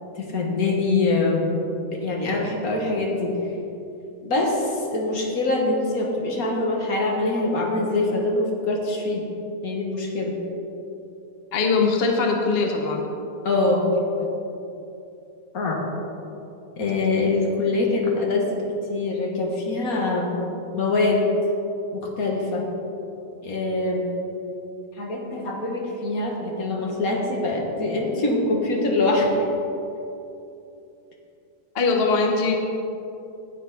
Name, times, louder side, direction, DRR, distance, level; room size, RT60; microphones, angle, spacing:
voice 1, 0.2-1.6 1.9-3.3 4.2-9.2 9.6-10.3 13.4-14.3 15.5-15.8 16.8-18.6 18.9-20.3 20.7-21.3 21.9-22.6 23.4-24.1 25.0-29.3, left 2 dB, 65° left, -1 dB, 2.0 m, -24 dB
voice 2, 11.5-13.0 31.7-32.6, left 4 dB, 45° left, 2 dB, 1.1 m, -21 dB
18.0 x 6.4 x 4.1 m, 2.8 s
omnidirectional pair, 1.6 m